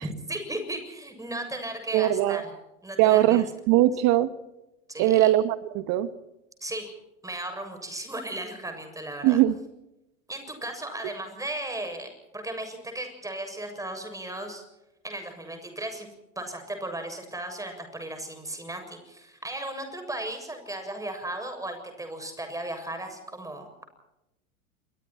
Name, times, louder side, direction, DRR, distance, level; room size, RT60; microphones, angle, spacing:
voice 1, 0.0-2.5 2.8-3.4 4.9-5.3 6.6-6.9 7.2-9.4 10.3-14.6 15.0-16.1 16.4-23.8, right 1 dB, 10° right, 6 dB, 7.3 m, -36 dB
voice 2, 1.9-2.4 3.0-4.3 5.0-6.1 9.2-9.6, right 14 dB, 45° right, 14 dB, 1.5 m, -21 dB
28.0 x 23.5 x 4.5 m, 0.93 s
figure-of-eight pair, 90°, 41 cm